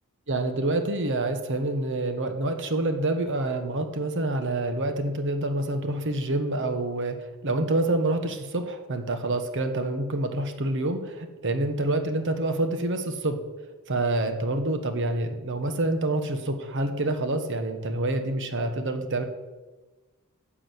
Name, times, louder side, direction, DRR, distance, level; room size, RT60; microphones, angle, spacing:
voice 1, 0.3-7.2 7.4-13.4 13.9-19.2, right 2 dB, 60° right, 7 dB, 1.2 m, -27 dB
10.0 x 6.2 x 8.0 m, 1.2 s
head